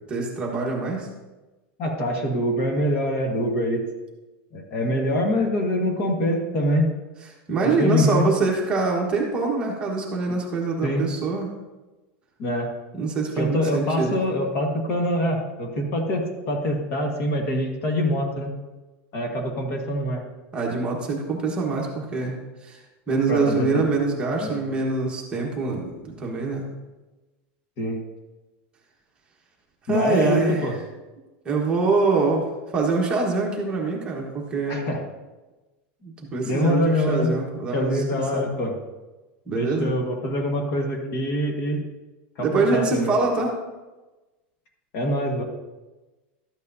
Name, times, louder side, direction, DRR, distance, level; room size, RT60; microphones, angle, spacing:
voice 1, 0.1-1.1 7.5-11.5 12.9-14.2 20.5-22.3 22.6-22.8 23.1-26.6 29.9-30.6 31.4-34.8 36.0-38.5 39.5-39.9 42.4-43.6, right 3 dB, 15° right, -2 dB, 1.3 m, -24 dB
voice 2, 1.8-3.8 4.5-6.9 7.6-8.3 10.3-10.4 10.8-11.0 12.4-12.7 13.4-18.5 19.1-20.2 23.3-23.9 24.4-24.6 27.8-28.0 29.9-30.8 34.7-35.0 36.4-37.3 37.7-38.8 39.5-41.8 42.4-43.1 44.9-45.4, left 1 dB, 40° left, 2 dB, 1.5 m, -24 dB
13.0 x 8.4 x 2.7 m, 1.1 s
supercardioid pair, 165°, 6 cm